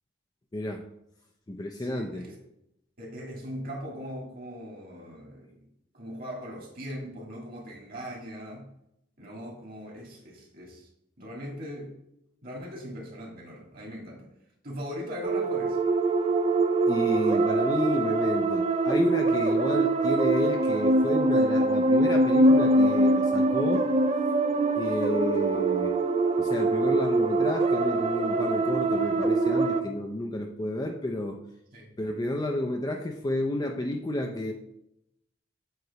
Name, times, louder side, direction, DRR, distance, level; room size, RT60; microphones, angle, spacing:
voice 1, 0.5-0.8 1.5-2.3 16.9-23.8 24.8-26.0 26.4-31.4 32.0-34.5, left 1 dB, 20° left, 2 dB, 0.5 m, -31 dB
voice 2, 1.8-2.4 3.0-5.5 5.9-8.7 9.2-10.9 11.2-11.9 12.4-14.3 14.6-15.8 31.7-31.9, equal, 50° right, -2 dB, 2.0 m, -40 dB
sound 1, 15.2-29.8, right 2 dB, 35° right, 0.4 m, -23 dB
7.8 x 3.0 x 4.7 m, 0.80 s
head